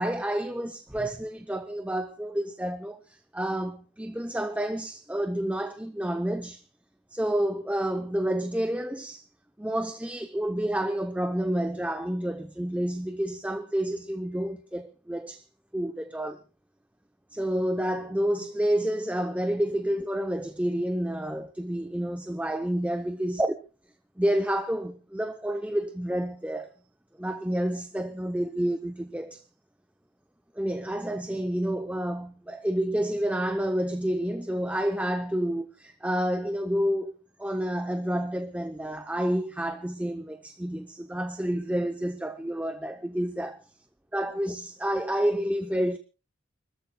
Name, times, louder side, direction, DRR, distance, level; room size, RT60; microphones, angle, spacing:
voice 1, 0.0-6.6 7.1-9.3 9.6-15.4 15.7-16.4 17.3-23.5 24.2-26.8 27.2-29.4 30.5-37.1 37.4-43.6 44.1-46.0, right 1 dB, 5° right, 0.7 m, -29 dB
29.5 x 14.0 x 2.3 m
head